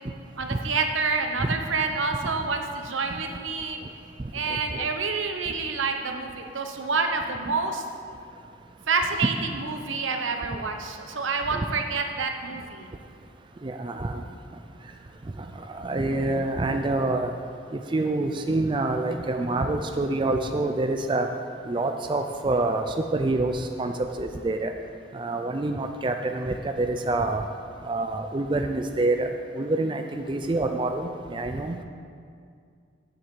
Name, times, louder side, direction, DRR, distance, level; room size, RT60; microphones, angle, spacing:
voice 1, 0.4-3.8 4.3-7.8 8.9-12.9, right 4 dB, 85° right, 5 dB, 1.0 m, -28 dB
voice 2, 13.6-14.2 15.7-17.3 17.9-21.3 21.7-24.7 25.1-27.4 27.8-29.3 29.6-31.8, right 2 dB, 25° right, 5 dB, 0.4 m, -26 dB
8.0 x 7.2 x 7.7 m, 2.3 s
head